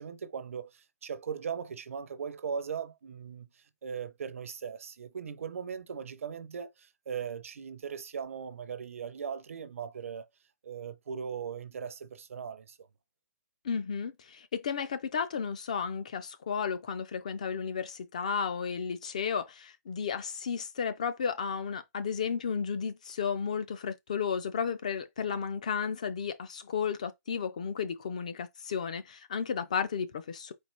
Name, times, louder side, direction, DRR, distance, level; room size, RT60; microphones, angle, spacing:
voice 1, 0.0-10.3 10.6-12.9, right 7 dB, 50° right, 0.6 m, -39 dB
voice 2, 13.6-30.5, left 6 dB, 25° left, 0.3 m, -33 dB
4.3 x 2.6 x 4.4 m
hypercardioid pair, 180°, 9 cm